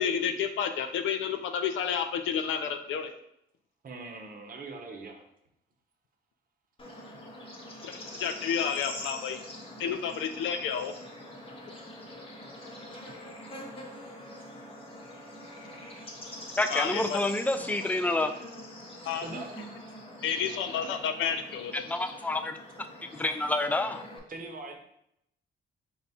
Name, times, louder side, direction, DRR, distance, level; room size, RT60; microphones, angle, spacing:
voice 1, 0.0-3.1 7.8-9.4 9.8-10.9 16.7-17.2 19.1-19.3 20.2-21.7, left 7 dB, 75° left, 7 dB, 0.4 m, -30 dB
voice 2, 3.8-5.2 19.2-19.6 24.3-24.8, right 3 dB, 45° right, 3 dB, 0.9 m, -41 dB
Bird / Insect, 6.8-24.2, left 1 dB, 25° left, 0.9 m, -44 dB
voice 3, 16.6-18.3 21.9-22.9 23.1-24.0, left 2 dB, 10° left, 8 dB, 0.3 m, -28 dB
4.1 x 2.3 x 4.2 m, 0.76 s
cardioid pair, 90°, 20 cm